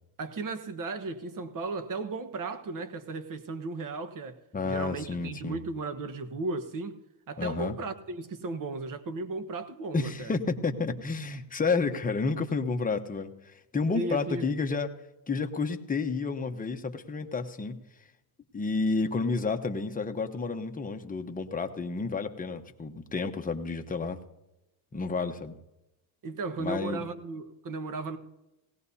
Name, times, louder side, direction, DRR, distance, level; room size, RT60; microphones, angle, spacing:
voice 1, 0.2-4.4 4.6-7.0 7.3-10.3 13.9-14.5 26.2-28.2, right 3 dB, 40° right, 1.3 m, -35 dB
voice 2, 4.5-5.6 7.4-7.8 9.9-15.0 15.3-17.8 18.5-24.2 24.9-25.5 26.6-27.0, left 4 dB, 15° left, 1.0 m, -30 dB
19.0 x 17.5 x 2.8 m
cardioid pair, 115°, 50 cm